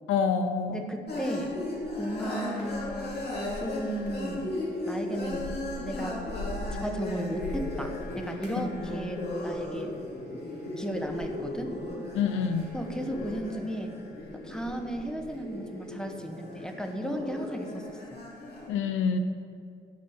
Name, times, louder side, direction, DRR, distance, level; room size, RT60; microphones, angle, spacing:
voice 1, 0.1-0.8 12.1-12.7 18.7-19.2, left 6 dB, 90° left, 9 dB, 0.8 m, -26 dB
voice 2, 0.7-1.6 2.0-3.2 3.6-4.5 4.9-5.5 5.8-6.3 6.8-10.0 10.8-11.7 12.7-14.0 14.4-18.2, equal, 5° left, 4 dB, 1.1 m, -35 dB
sound 1, 1.1-18.7, left 1 dB, 55° left, 2.9 m, -36 dB
11.5 x 5.3 x 7.0 m, 2.3 s
cardioid pair, 90°, 20 cm